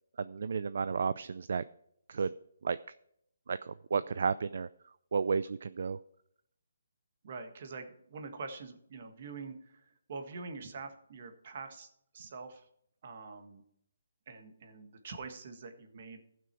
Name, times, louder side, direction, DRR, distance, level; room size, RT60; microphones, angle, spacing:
voice 1, 0.2-1.6 2.1-2.3 2.6-2.8 3.5-4.7 5.1-6.0, right 5 dB, 55° right, 15 dB, 0.4 m, -32 dB
voice 2, 7.2-9.8 10.1-12.7 13.0-13.6 14.3-16.2, right 4 dB, 40° right, 5 dB, 1.6 m, -45 dB
15.0 x 6.0 x 4.6 m, 0.71 s
hypercardioid pair, 170°, 0 cm